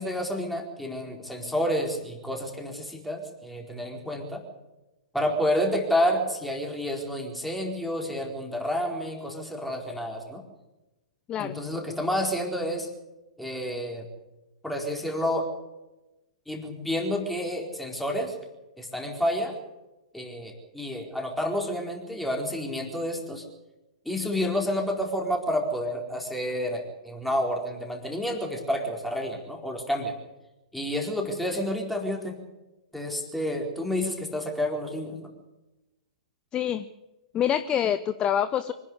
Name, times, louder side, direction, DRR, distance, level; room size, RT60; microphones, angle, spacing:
voice 1, 0.0-4.4 5.1-10.4 11.4-12.9 13.4-14.1 14.6-15.5 16.5-18.4 18.8-19.6 20.1-23.5 24.0-30.1 30.7-32.4 32.9-35.3, equal, ahead, 0 dB, 4.4 m, -29 dB
voice 2, 36.5-36.8 37.3-38.7, left 9 dB, 25° left, 13 dB, 0.7 m, -26 dB
25.0 x 11.0 x 9.8 m, 1.0 s
figure-of-eight pair, 110°, 4 cm